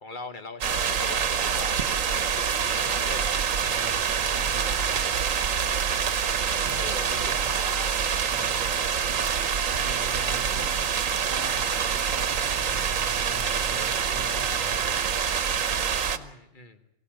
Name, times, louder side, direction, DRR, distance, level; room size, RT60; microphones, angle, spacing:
voice 1, 0.0-3.2 6.5-7.9 16.1-16.8, left 3 dB, 40° left, 8 dB, 1.5 m, -40 dB
sound 1, 0.6-16.2, right 7 dB, 90° right, 1.4 m, -26 dB
voice 2, 3.6-5.2 6.7-7.4 8.3-9.3 9.7-10.8 11.3-15.0, right 1 dB, 25° right, 3 dB, 3.6 m, -42 dB
23.5 x 16.5 x 8.8 m, 0.87 s
omnidirectional pair, 1.3 m